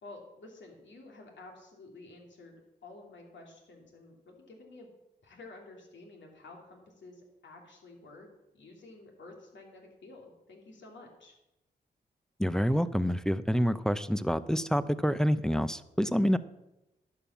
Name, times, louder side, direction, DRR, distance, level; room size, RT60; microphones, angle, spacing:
voice 1, 0.0-4.9 5.2-8.3 8.5-11.3, left 2 dB, 75° left, 1 dB, 2.7 m, -51 dB
voice 2, 12.4-16.4, equal, 5° left, 14 dB, 0.7 m, -27 dB
11.5 x 5.5 x 7.3 m, 0.93 s
supercardioid pair, 40°, 19 cm